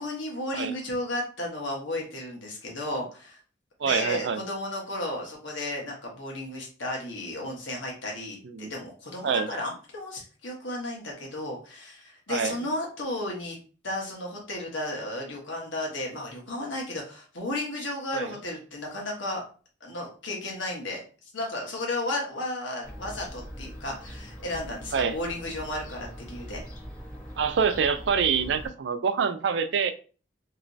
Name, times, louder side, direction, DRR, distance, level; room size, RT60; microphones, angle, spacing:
voice 1, 0.0-3.4 3.8-13.6 13.8-19.4 19.8-26.6, left 1 dB, 80° left, -1 dB, 1.2 m, -34 dB
voice 2, 3.8-4.4 8.4-8.7 9.2-9.5 12.3-12.5 18.1-18.3 24.9-25.2 27.4-29.9, right 6 dB, 65° right, 10 dB, 0.4 m, -26 dB
Fowl / Gull seagull, 22.8-28.7, equal, 45° left, 0.9 m, -42 dB
3.1 x 3.0 x 2.7 m, 0.38 s
head